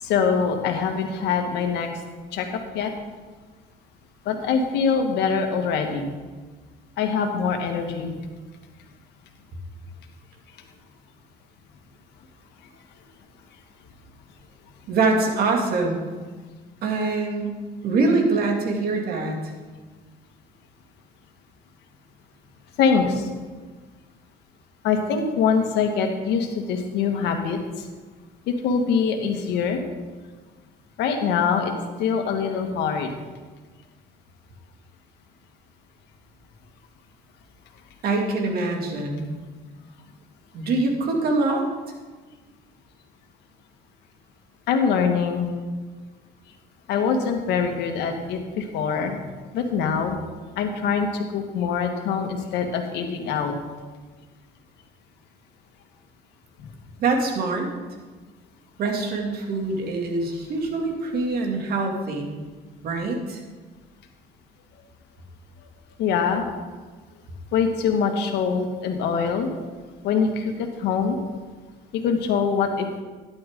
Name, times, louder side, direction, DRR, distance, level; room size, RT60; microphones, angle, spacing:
voice 1, 0.0-1.9 2.3-2.5 2.7-2.9 4.2-6.0 7.0-8.1 22.8-23.3 24.8-27.6 28.5-29.8 31.0-31.7 32.0-33.1 44.7-45.5 46.9-49.2 49.5-50.2 50.5-53.5 66.0-66.4 67.5-69.5 70.0-70.4 70.8-71.2 72.0-72.9, left 6 dB, 85° left, 4 dB, 1.7 m, -23 dB
voice 2, 14.9-16.0 16.8-17.6 17.8-19.5 38.0-39.3 40.5-41.6 57.0-57.7 58.8-62.3 62.8-63.4, right 3 dB, 65° right, 1 dB, 2.4 m, -24 dB
12.5 x 11.0 x 3.7 m, 1.4 s
cardioid pair, 110°, 17 cm